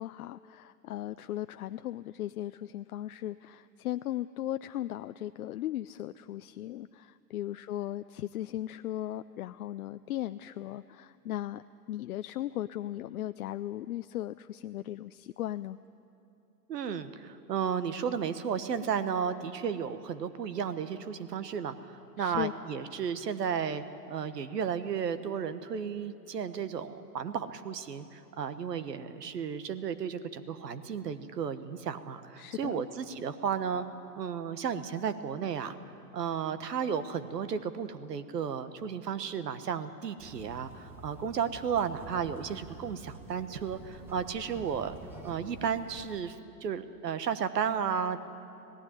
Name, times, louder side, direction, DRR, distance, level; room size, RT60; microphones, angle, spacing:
voice 1, 0.0-11.6 11.9-15.8 22.2-22.5 32.4-32.8, left 13 dB, 65° left, 11 dB, 0.5 m, -37 dB
voice 2, 16.7-33.8 34.2-35.8 36.1-44.9 45.2-46.4 46.6-48.2, right 7 dB, 75° right, 11 dB, 1.3 m, -33 dB
sound 1, 40.2-46.1, right 2 dB, 5° right, 0.8 m, -49 dB
18.0 x 15.0 x 9.8 m, 2.9 s
hypercardioid pair, 135°, 49 cm